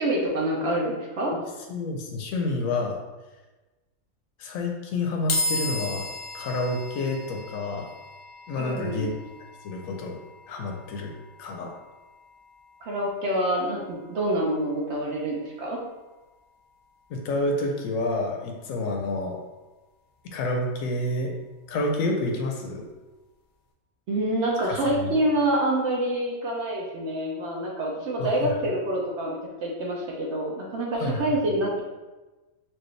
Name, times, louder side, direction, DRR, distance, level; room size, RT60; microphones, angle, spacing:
voice 1, 0.0-1.3 8.6-9.1 12.8-15.8 24.1-31.8, right 1 dB, 60° right, -3 dB, 0.9 m, -27 dB
voice 2, 1.7-3.0 4.4-6.1 6.3-7.9 8.5-9.2 9.6-10.2 10.5-11.1 11.4-11.7 17.1-19.4 20.3-21.3 21.7-22.9 24.6-25.1 28.2-28.6 31.0-31.2, left 2 dB, 70° left, 2 dB, 1.0 m, -29 dB
sound 1, 5.3-18.6, left 2 dB, 85° left, 1.2 m, -38 dB
4.5 x 2.5 x 3.1 m, 1.2 s
omnidirectional pair, 1.5 m